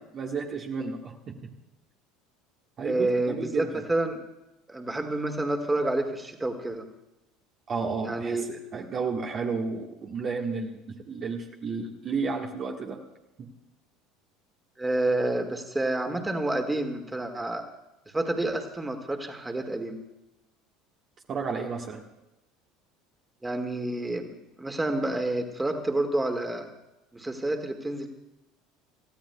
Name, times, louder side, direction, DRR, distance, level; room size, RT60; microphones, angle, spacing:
voice 1, 0.1-1.5 2.8-3.8 7.7-13.0 13.4-13.5 21.3-22.0, right 4 dB, 40° right, 0 dB, 1.5 m, -32 dB
voice 2, 2.8-4.2 4.7-6.9 8.0-8.4 14.8-17.7 18.1-20.0 23.4-24.2 24.6-26.7 27.1-28.1, right 2 dB, 10° right, 5 dB, 2.0 m, -29 dB
29.0 x 15.5 x 2.3 m, 0.94 s
figure-of-eight pair, 65°, 0 cm